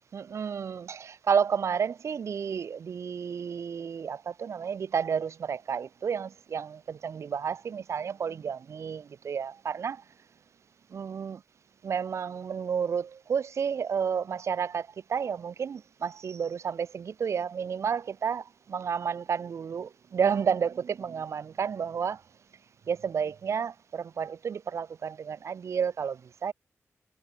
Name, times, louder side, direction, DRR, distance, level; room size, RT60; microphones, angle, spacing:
voice 1, 0.1-10.0 10.9-11.4 11.8-22.2 22.9-26.5, right 7 dB, 65° right, 1.4 m, -31 dB
wide cardioid pair, 145°, 5 cm